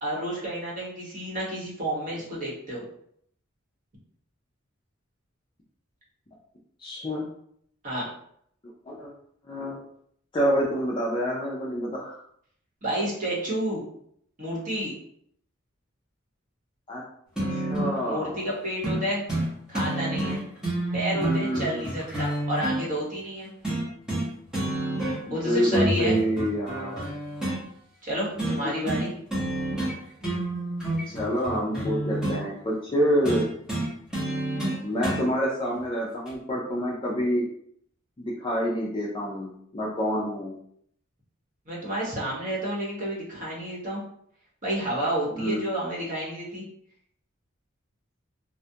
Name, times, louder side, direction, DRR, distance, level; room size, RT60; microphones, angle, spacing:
voice 1, 0.0-2.9 7.8-8.1 12.8-13.8 14.4-14.9 18.0-19.3 19.7-20.4 20.9-23.5 25.3-26.2 28.0-29.1 41.7-44.0 44.6-46.7, right 1 dB, 40° right, -5 dB, 0.9 m, -30 dB
voice 2, 6.8-7.3 8.9-9.1 9.5-9.8 10.3-12.2 16.9-17.0 17.5-18.4 21.1-21.9 25.4-27.0 31.1-33.5 34.8-37.5 38.2-40.6 45.3-45.7, equal, 25° left, -5 dB, 0.4 m, -27 dB
sound 1, 17.4-18.0 18.8-19.0 19.3-19.5 19.7-22.8 23.6-24.3 24.5-25.4 25.7-27.6 28.4-28.6 28.9-29.1 29.3-30.0 30.2-32.4 33.2-35.2 36.3-36.4, right 1 dB, 5° right, 0.7 m, -28 dB
2.3 x 2.1 x 2.6 m, 0.66 s
head